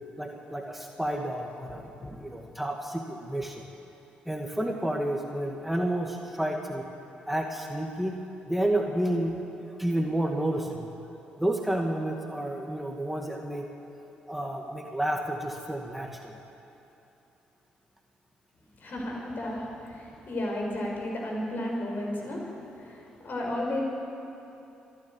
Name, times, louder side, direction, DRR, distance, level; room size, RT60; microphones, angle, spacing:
voice 1, 0.2-1.8 2.2-3.7 4.3-6.8 7.3-8.1 8.5-10.9 11.4-13.7 14.3-16.3, right 1 dB, 5° right, 1 dB, 2.2 m, -30 dB
voice 2, 18.8-22.5 22.8-23.8, left 1 dB, 50° left, -1 dB, 5.6 m, -33 dB
26.5 x 10.5 x 9.4 m, 2.9 s
hypercardioid pair, 45°, 4 cm